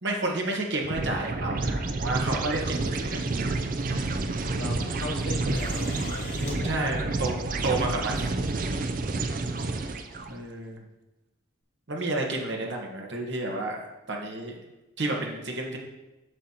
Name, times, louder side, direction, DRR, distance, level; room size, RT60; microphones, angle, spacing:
voice 1, 0.0-3.2 6.6-8.2 10.3-10.8 11.9-14.5 15.0-15.8, right 2 dB, 65° right, 0 dB, 1.3 m, -31 dB
sound 1, 0.8-10.3, right 3 dB, 45° right, 0.4 m, -29 dB
voice 2, 3.9-6.9 7.3-7.4, left 2 dB, 75° left, 0 dB, 0.6 m, -38 dB
sound 2, 5.5-6.6 8.0-8.1 9.4-9.7 10.6-10.7, left 2 dB, 60° left, 1.8 m, -42 dB
8.0 x 6.4 x 2.9 m, 1.0 s
head